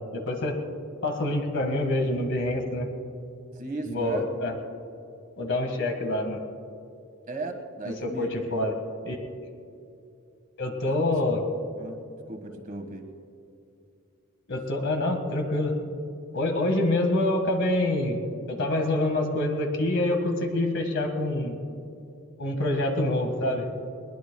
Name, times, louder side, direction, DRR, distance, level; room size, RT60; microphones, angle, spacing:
voice 1, 0.1-0.6 1.0-2.9 3.8-4.5 5.4-6.4 7.8-8.7 9.0-9.2 10.6-11.4 14.5-15.7 16.3-21.6 22.4-23.7, left 1 dB, 60° left, 4 dB, 1.7 m, -26 dB
voice 2, 3.5-4.3 7.3-8.3 10.8-11.1 11.8-12.0 12.3-13.1, right 2 dB, 40° right, 5 dB, 1.6 m, -35 dB
22.0 x 20.0 x 2.3 m, 2.6 s
head